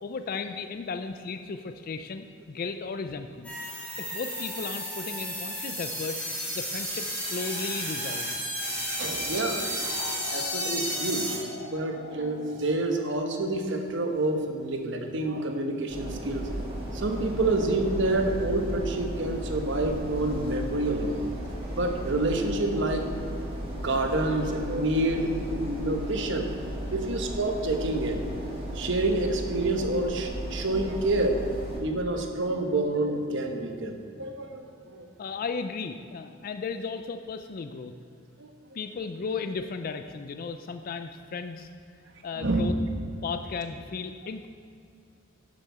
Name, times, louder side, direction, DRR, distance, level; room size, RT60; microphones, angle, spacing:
voice 1, 0.0-3.5 4.0-6.2 6.5-8.4 26.9-27.0 35.2-37.9 38.7-41.7 42.2-42.7 43.2-44.5, left 4 dB, 45° left, 8 dB, 0.4 m, -35 dB
sound 1, 3.4-11.4, equal, 5° left, 2.5 m, -32 dB
voice 2, 9.0-9.6 10.3-11.4 11.7-16.4 16.9-21.3 21.8-23.1 23.7-26.5 26.9-28.3 28.7-31.4 31.8-35.1 38.4-38.5 42.4-42.7, right 2 dB, 60° right, 4 dB, 1.0 m, -28 dB
sound 2, 9.8-14.3, left 3 dB, 60° left, 0.8 m, -44 dB
sound 3, 15.9-31.8, right 1 dB, 30° right, 1.7 m, -35 dB
10.5 x 7.1 x 4.2 m, 2.4 s
head